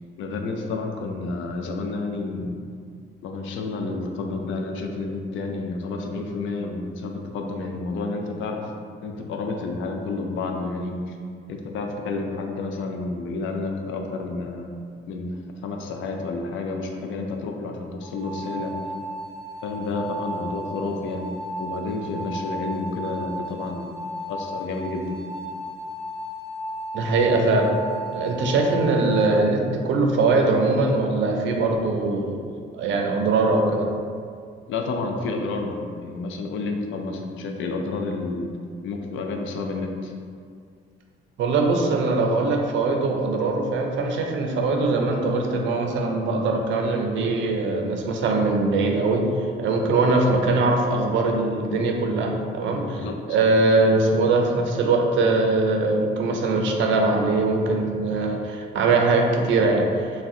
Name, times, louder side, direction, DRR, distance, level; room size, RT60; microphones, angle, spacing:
voice 1, 0.2-2.6 3.2-8.7 9.0-11.2 11.5-14.7 15.1-18.7 19.6-21.3 21.6-24.0 24.3-25.2 34.7-38.5 38.8-40.1 52.8-53.4, left 3 dB, 75° left, 2 dB, 0.4 m, -30 dB
sound 1, 18.0-29.2, right 1 dB, 5° left, 0.7 m, -35 dB
voice 2, 26.9-27.7 28.1-32.4 32.7-33.9 41.4-49.3 49.6-60.1, right 3 dB, 70° right, 2 dB, 0.4 m, -21 dB
2.4 x 2.1 x 3.6 m, 2.2 s
cardioid pair, 90°, 20 cm